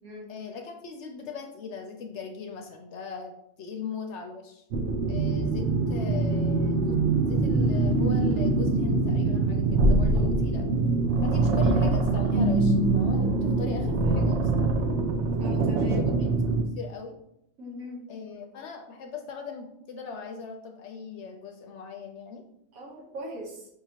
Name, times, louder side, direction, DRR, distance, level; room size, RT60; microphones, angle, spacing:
voice 1, 0.3-3.3 3.6-4.6 5.1-10.7 11.2-14.9 15.7-17.2 18.1-22.4, left 6 dB, 65° left, 3 dB, 0.7 m, -40 dB
sound 1, 4.7-16.6, right 3 dB, 65° right, 0.8 m, -24 dB
voice 2, 15.4-16.0 17.6-18.0 22.7-23.7, equal, 85° right, -1 dB, 1.5 m, -40 dB
5.2 x 2.8 x 2.8 m, 0.77 s
omnidirectional pair, 1.5 m